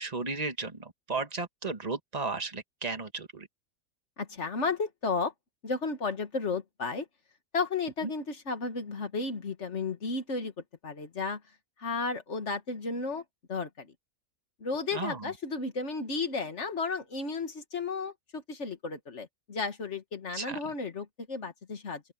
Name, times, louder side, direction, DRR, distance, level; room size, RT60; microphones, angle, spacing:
voice 1, 0.0-3.5 14.9-15.3 20.3-20.6, right 4 dB, 25° right, 1.9 m, -34 dB
voice 2, 4.2-5.3 5.6-7.1 7.5-10.5 10.8-11.4 11.8-13.2 13.5-13.9 14.6-22.0, left 4 dB, 45° left, 2.1 m, -33 dB
open air
omnidirectional pair, 1.8 m